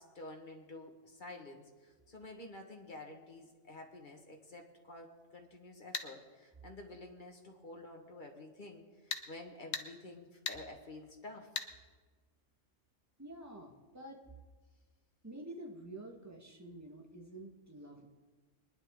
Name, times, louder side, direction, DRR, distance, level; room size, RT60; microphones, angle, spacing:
voice 1, 0.0-11.6, left 2 dB, 40° left, 1 dB, 1.8 m, -50 dB
sound 1, 5.9-6.1 9.1-9.3 9.7-9.9 10.5-10.6 11.6-11.7, left 6 dB, 70° left, 1.3 m, -37 dB
voice 2, 13.2-14.2 15.2-18.1, right 1 dB, 10° right, 0 dB, 1.6 m, -49 dB
24.0 x 10.5 x 3.8 m, 1.4 s
omnidirectional pair, 1.4 m